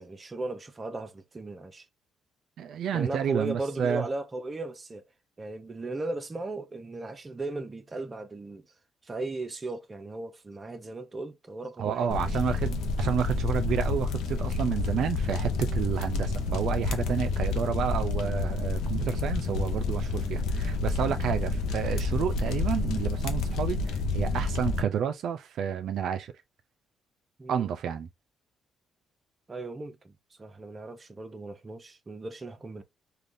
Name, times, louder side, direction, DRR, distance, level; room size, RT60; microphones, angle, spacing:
voice 1, 0.0-1.8 2.9-5.0 5.4-8.7 9.0-12.3 27.4-27.7 29.5-30.1 30.4-32.8, right 2 dB, 30° right, 0.7 m, -37 dB
voice 2, 2.6-4.0 11.8-26.3 27.5-28.1, right 8 dB, 70° right, 0.4 m, -30 dB
sound 1, 12.1-24.8, left 3 dB, 85° left, 0.6 m, -29 dB
3.4 x 2.3 x 2.5 m
cardioid pair, 90°, 0 cm